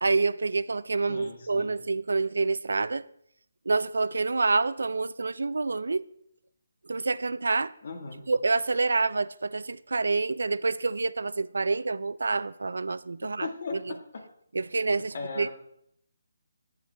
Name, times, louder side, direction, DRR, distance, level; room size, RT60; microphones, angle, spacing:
voice 1, 0.0-3.0 3.7-6.1 6.8-7.7 8.3-13.5 14.5-15.5, right 3 dB, 90° right, 0.4 m, -27 dB
voice 2, 1.1-1.8 7.8-8.2 13.4-14.2 15.1-15.5, left 4 dB, 35° left, 1.5 m, -37 dB
11.0 x 9.5 x 3.3 m
hypercardioid pair, 180°, 0 cm